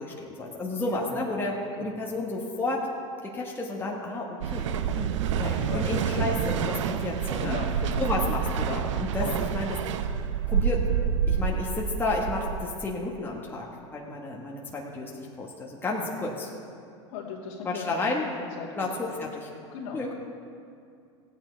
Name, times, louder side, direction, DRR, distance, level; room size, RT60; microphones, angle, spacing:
voice 1, 0.0-2.9 3.2-4.7 5.0-5.1 5.4-7.6 8.0-9.3 9.5-9.8 10.5-11.0 11.3-16.5 17.6-18.3 18.8-19.5 19.9-20.1, left 2 dB, 15° left, -3 dB, 1.5 m, -31 dB
voice 2, 0.9-1.3 1.8-2.0 5.5-6.4 7.4-8.1 9.2-9.5 16.0-16.4 17.1-18.1 18.6-18.9 19.7-20.1, left 5 dB, 65° left, -5 dB, 2.4 m, -38 dB
sound 1, 4.4-12.7, right 7 dB, 75° right, 0.6 m, -28 dB
15.5 x 9.0 x 4.5 m, 2.4 s
hypercardioid pair, 105°, 16 cm